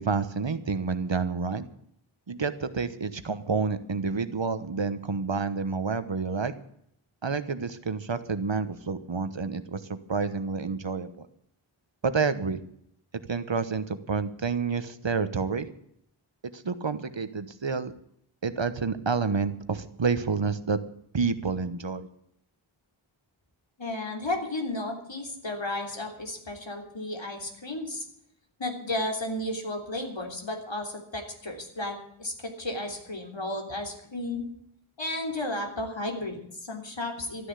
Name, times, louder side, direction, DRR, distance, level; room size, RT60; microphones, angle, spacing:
voice 1, 0.0-1.6 2.3-6.5 7.2-11.1 12.0-12.6 13.3-15.7 16.5-17.9 18.4-20.8 21.1-22.1, right 5 dB, 60° right, 12 dB, 1.2 m, -29 dB
voice 2, 23.8-28.1 28.6-34.4 35.0-37.5, left 1 dB, 65° left, 3 dB, 3.5 m, -33 dB
13.5 x 9.8 x 8.3 m, 0.71 s
wide cardioid pair, 40°, 49 cm